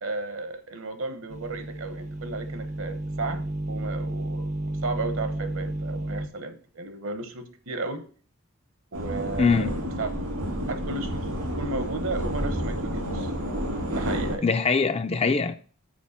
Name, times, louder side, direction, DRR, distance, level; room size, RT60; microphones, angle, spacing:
voice 1, 0.0-8.1 8.9-10.1 10.7-13.5 13.9-14.4, right 3 dB, 65° right, 1.0 m, -34 dB
sound 1, 1.3-6.3, right 1 dB, 30° right, 0.5 m, -32 dB
sound 2, 8.9-14.4, equal, 80° right, 2.4 m, -30 dB
voice 2, 9.4-9.8 14.4-15.5, left 4 dB, 25° left, 0.4 m, -22 dB
6.3 x 4.6 x 5.7 m
head